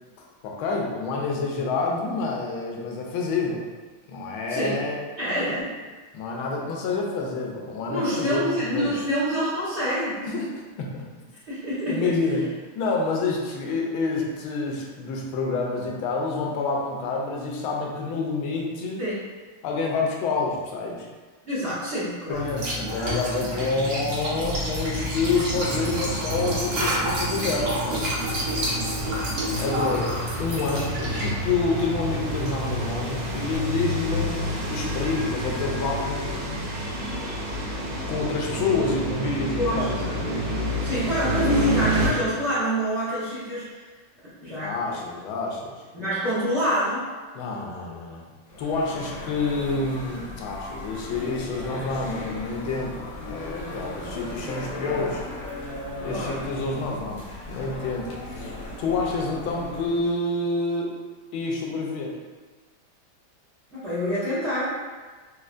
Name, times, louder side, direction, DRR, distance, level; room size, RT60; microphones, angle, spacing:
voice 1, 0.2-3.6 4.1-5.0 6.1-8.9 10.2-11.1 11.9-12.4 12.7-19.0 19.6-21.1 22.3-28.0 29.6-36.7 38.1-39.9 44.6-45.7 47.3-48.2 48.6-55.3 56.0-57.2 57.5-58.5 58.8-61.0 61.3-62.2, left 3 dB, 85° left, -1 dB, 1.4 m, -28 dB
voice 2, 4.5-4.8 5.2-5.7 7.9-10.2 11.5-12.1 19.0-19.2 21.5-22.5 30.5-30.6 39.6-40.2 40.8-43.8 44.4-45.0 45.9-47.0 54.1-54.3 56.1-56.4 63.7-64.8, equal, 45° right, -12 dB, 1.0 m, -26 dB
Liquid, 22.3-33.6, equal, 70° right, 1.7 m, -30 dB
sound 1, 24.4-42.1, right 1 dB, 90° right, 1.7 m, -30 dB
sound 2, 48.5-60.1, left 1 dB, 60° left, 1.0 m, -37 dB
4.3 x 2.4 x 2.4 m, 1.3 s
omnidirectional pair, 2.2 m